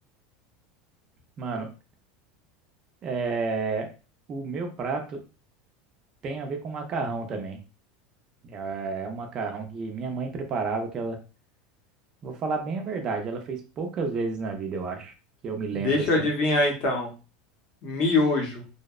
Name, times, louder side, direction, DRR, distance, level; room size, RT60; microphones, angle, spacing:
voice 1, 1.4-1.7 3.0-3.9 4.3-5.2 6.2-7.6 8.4-11.2 12.2-15.1 15.4-16.3, right 4 dB, 25° right, 4 dB, 0.4 m, -31 dB
voice 2, 15.7-17.1 17.8-18.6, left 2 dB, 35° left, 1 dB, 0.7 m, -24 dB
2.7 x 2.0 x 2.3 m, 0.32 s
supercardioid pair, 175°, 3 cm